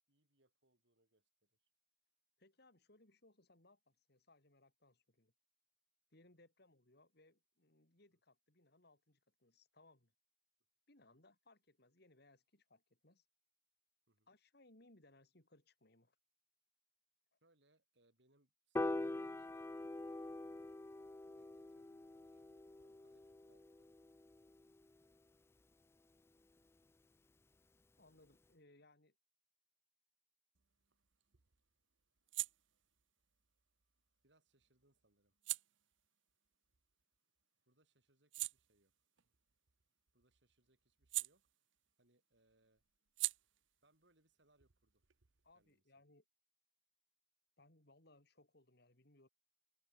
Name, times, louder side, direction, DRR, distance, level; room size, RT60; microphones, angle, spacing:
voice 1, 0.1-1.7 11.1-11.2 14.1-14.3 17.4-20.8 21.3-23.9 34.2-35.3 37.7-38.9 40.1-41.5 42.0-42.8 43.8-45.0 45.5-45.8, right 2 dB, 65° right, 6.3 m, -78 dB
voice 2, 2.4-5.3 6.1-10.1 10.9-13.3 14.3-16.2 17.3-17.4 28.0-29.2 45.4-46.2 47.6-49.3, left 2 dB, 60° left, 4.5 m, -68 dB
Piano, 18.8-25.1, left 2 dB, 15° left, 0.3 m, -45 dB
sound 1, 30.5-37.4 37.8-42.1 42.3-45.7, right 16 dB, 85° right, 1.1 m, -48 dB
open air
head